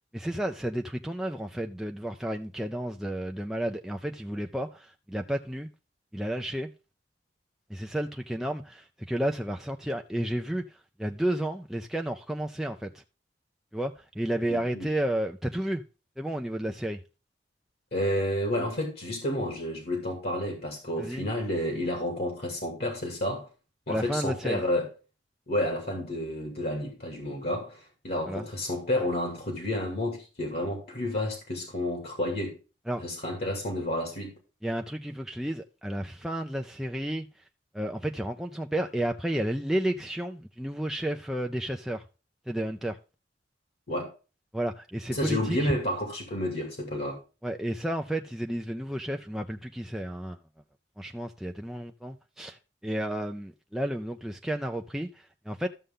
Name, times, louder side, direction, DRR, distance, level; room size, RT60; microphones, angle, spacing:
voice 1, 0.0-5.7 6.1-6.7 7.7-13.0 13.7-15.8 16.2-17.0 21.0-21.3 23.9-24.6 28.3-28.5 32.9-33.0 34.6-37.3 37.7-42.0 42.5-43.0 44.5-45.7 47.4-50.4 51.0-55.7, right 1 dB, ahead, 0.4 m, -32 dB
voice 2, 14.5-14.9 17.9-23.5 23.9-24.9 25.5-32.6 33.0-34.3 43.9-44.1 45.1-47.2, left 1 dB, 60° left, 2.4 m, -30 dB
12.5 x 6.7 x 3.7 m
head